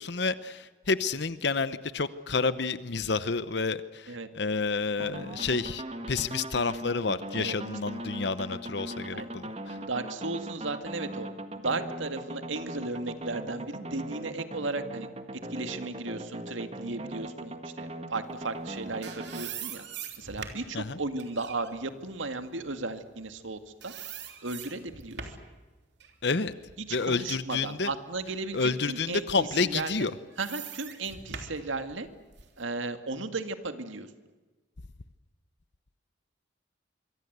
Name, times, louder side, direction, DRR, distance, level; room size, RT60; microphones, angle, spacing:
voice 1, 0.0-9.8 20.7-21.0 26.2-26.5 26.9-27.9 28.5-30.1, left 4 dB, 60° left, 14 dB, 0.9 m, -29 dB
sound 1, 5.0-19.4, right 1 dB, 30° right, 1.7 m, -40 dB
voice 2, 9.8-11.3 11.5-15.1 15.5-19.8 20.2-23.9 24.4-25.4 26.8-30.1 30.4-32.1 32.6-34.1, right 3 dB, 85° right, 8 dB, 2.1 m, -35 dB
sound 2, 18.6-23.5 23.8-25.5 26.0-28.0 28.4-28.6 29.6-32.6, right 7 dB, 65° right, 3.4 m, -43 dB
26.0 x 24.0 x 8.1 m, 1.3 s
head